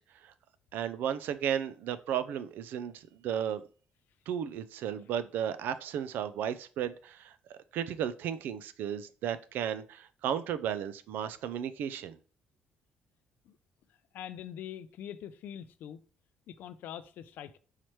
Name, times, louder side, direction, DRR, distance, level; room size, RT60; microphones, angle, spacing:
voice 1, 0.7-3.6 4.3-12.2, right 9 dB, 75° right, 0.4 m, -34 dB
voice 2, 14.1-16.0 16.5-17.6, left 10 dB, 70° left, 0.4 m, -43 dB
5.6 x 3.2 x 3.0 m
cardioid pair, 115°, 3 cm